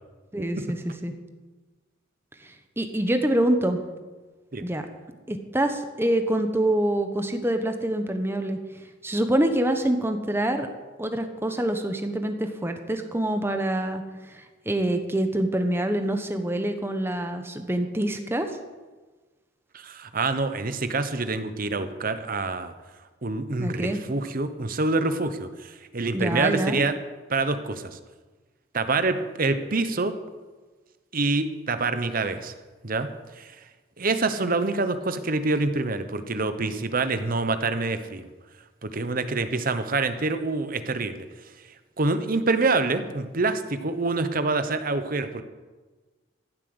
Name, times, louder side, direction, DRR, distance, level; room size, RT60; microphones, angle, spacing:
voice 1, 0.3-0.8 1.0-1.1 2.8-3.8 4.6-4.8 5.3-8.6 9.0-10.7 11.0-18.5 23.6-24.0 26.1-26.8, right 1 dB, 10° right, 6 dB, 1.2 m, -26 dB
voice 2, 19.7-22.7 23.2-26.9 27.3-28.0 28.7-30.1 31.1-32.5 32.8-33.1 33.4-33.5 34.0-38.3 38.8-41.2 42.0-45.4, right 3 dB, 45° right, 10 dB, 1.0 m, -26 dB
15.0 x 7.7 x 8.0 m, 1.3 s
head